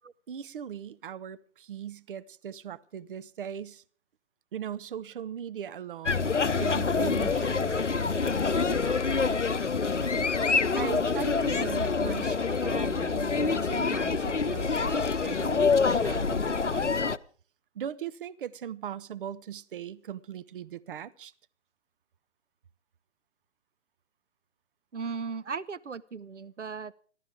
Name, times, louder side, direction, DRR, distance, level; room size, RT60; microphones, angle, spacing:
voice 1, 0.3-3.8 4.5-9.7 10.0-17.0 17.7-21.3, right 9 dB, 50° right, 0.8 m, -39 dB
sound 1, 6.1-17.2, left 4 dB, 85° left, 0.7 m, -26 dB
voice 2, 24.9-27.0, right 5 dB, 80° right, 0.7 m, -37 dB
29.5 x 12.0 x 3.5 m
figure-of-eight pair, 125°, 35 cm